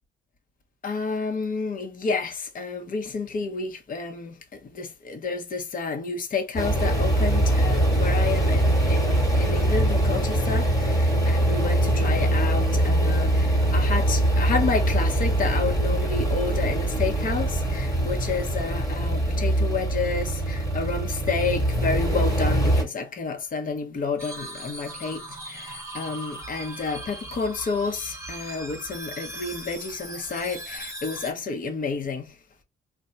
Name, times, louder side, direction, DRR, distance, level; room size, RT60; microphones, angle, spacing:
voice 1, 0.8-32.4, left 4 dB, 45° left, 0.8 m, -30 dB
sound 1, 6.6-22.8, right 1 dB, 15° left, 1.3 m, -23 dB
sound 2, 24.2-31.3, right 1 dB, 15° right, 0.8 m, -39 dB
2.8 x 2.2 x 3.2 m
cardioid pair, 90°, 20 cm